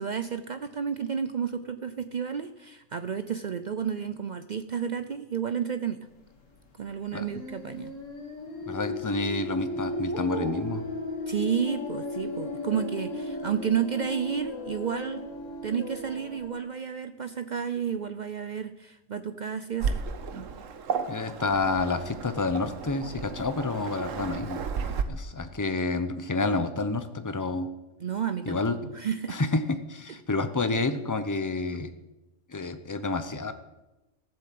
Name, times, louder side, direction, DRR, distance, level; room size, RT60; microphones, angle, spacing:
voice 1, 0.0-6.0 6.8-7.9 11.3-15.2 15.6-20.0 28.0-29.4, right 7 dB, 55° right, 10 dB, 0.5 m, -31 dB
sound 1, 7.2-16.5, left 2 dB, 85° left, 2.2 m, -35 dB
voice 2, 8.7-10.8 21.1-24.6 25.1-27.7 28.5-28.8 29.3-31.9 32.5-33.5, left 3 dB, 20° left, 10 dB, 0.6 m, -29 dB
Waves surf, 19.8-25.0, right 6 dB, 85° right, 1.3 m, -33 dB
14.5 x 7.6 x 7.6 m, 1.0 s
omnidirectional pair, 1.3 m